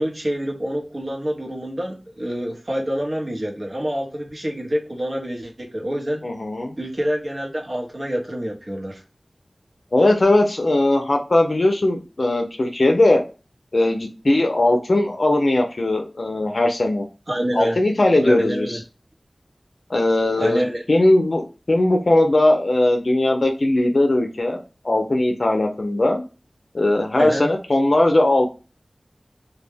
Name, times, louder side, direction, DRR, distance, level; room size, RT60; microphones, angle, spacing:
voice 1, 0.0-6.3 6.8-9.0 17.3-17.8 18.2-18.8 20.4-20.8 27.2-27.5, equal, 50° right, -1 dB, 0.9 m, -26 dB
voice 2, 6.2-6.8 9.9-13.2 13.7-17.1 17.5-18.8 19.9-20.6 20.9-26.2 26.7-28.5, left 1 dB, 60° left, 3 dB, 0.5 m, -19 dB
2.2 x 2.1 x 3.3 m, 0.32 s
wide cardioid pair, 65°, 0 cm